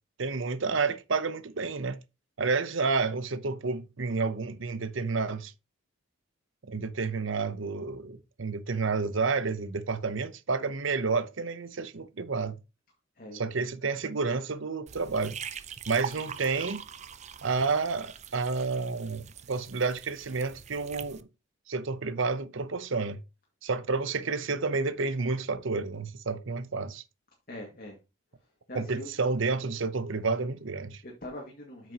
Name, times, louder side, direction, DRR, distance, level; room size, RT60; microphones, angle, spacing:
voice 1, 0.2-2.0 2.4-5.5 6.7-12.5 13.3-15.4 15.9-16.9 17.4-21.3 21.7-23.2 23.6-27.0 28.7-31.0, right 4 dB, 65° right, 0.8 m, -30 dB
sound 1, 14.9-21.2, right 7 dB, 35° right, 0.5 m, -43 dB
voice 2, 27.5-28.0 28.7-29.1 31.0-31.9, left 1 dB, 45° left, 2.1 m, -42 dB
8.8 x 6.3 x 2.9 m
head